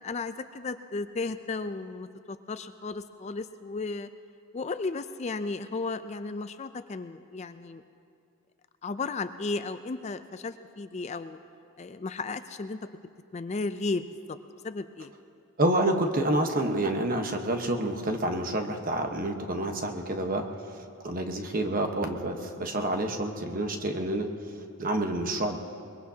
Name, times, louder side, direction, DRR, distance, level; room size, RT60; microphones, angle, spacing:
voice 1, 0.0-4.1 4.5-7.8 8.8-11.4 11.8-12.8 13.3-14.0 14.6-15.1 22.0-22.1, left 3 dB, 30° left, 11 dB, 0.4 m, -34 dB
voice 2, 15.6-25.6, right 1 dB, 40° right, 4 dB, 1.1 m, -28 dB
22.5 x 21.5 x 2.8 m, 2.4 s
head